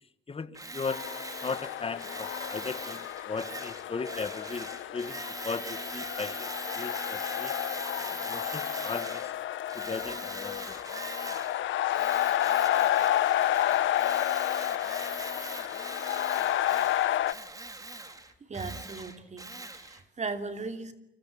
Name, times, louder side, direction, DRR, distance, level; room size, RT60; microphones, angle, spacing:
voice 1, 0.3-1.0 1.4-6.5 6.8-7.5 8.0-9.3 9.7-10.8, left 4 dB, 30° left, 11 dB, 1.8 m, -37 dB
Tools, 0.5-9.3 9.7-11.6 11.9-20.0, right 2 dB, 15° right, 3.6 m, -42 dB
sound 1, 0.9-17.3, left 12 dB, 75° left, 1.3 m, -30 dB
voice 2, 17.9-19.5 19.7-20.9, right 4 dB, 35° right, 8 dB, 2.9 m, -38 dB
30.0 x 25.5 x 7.7 m, 0.85 s
cardioid pair, 90°, 20 cm